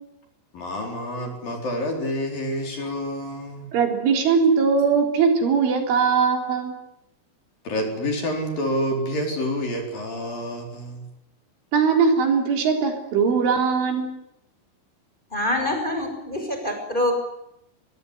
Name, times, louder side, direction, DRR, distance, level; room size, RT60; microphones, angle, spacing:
voice 1, 0.5-3.7 7.6-11.0, equal, 45° left, 2 dB, 5.7 m, -28 dB
voice 2, 3.7-6.7 11.7-14.1, right 5 dB, 75° right, 3 dB, 6.3 m, -20 dB
voice 3, 15.3-17.1, left 1 dB, 10° left, 4 dB, 5.9 m, -25 dB
24.0 x 22.5 x 9.9 m, 0.82 s
omnidirectional pair, 5.6 m